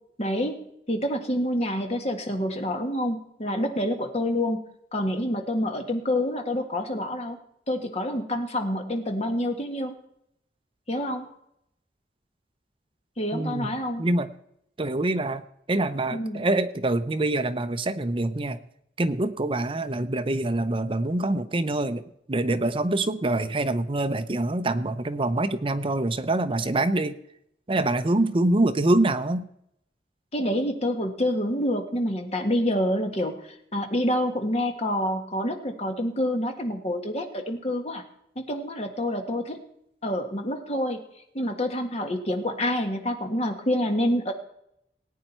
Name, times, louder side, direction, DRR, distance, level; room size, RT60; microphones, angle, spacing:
voice 1, 0.2-4.6 4.9-7.4 7.7-9.9 10.9-11.3 13.2-14.0 16.1-16.5 30.3-33.4 33.7-38.0 38.3-39.6 40.0-41.0 41.3-44.3, left 1 dB, 35° left, 4 dB, 1.7 m, -27 dB
voice 2, 13.3-14.3 14.8-15.4 15.7-18.6 19.0-27.2 27.7-29.5, right 2 dB, 30° right, 10 dB, 0.7 m, -25 dB
18.5 x 9.1 x 4.4 m, 0.75 s
head